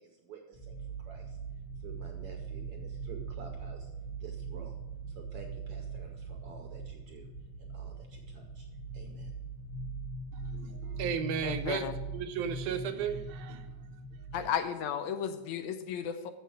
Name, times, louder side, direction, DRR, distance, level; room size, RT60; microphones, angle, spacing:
voice 1, 0.0-1.4 1.8-3.9 4.2-4.8 5.1-7.3 7.6-8.7 8.9-9.3, right 5 dB, 70° right, 2 dB, 1.4 m, -51 dB
sound 1, 0.5-14.5, right 3 dB, 30° left, 0.5 m, -41 dB
voice 2, 10.3-11.9 12.1-13.7, right 7 dB, 90° right, 7 dB, 2.2 m, -35 dB
voice 3, 11.4-11.9 14.3-16.3, left 8 dB, 80° left, 9 dB, 1.9 m, -34 dB
7.0 x 6.6 x 6.2 m, 1.2 s
omnidirectional pair, 3.5 m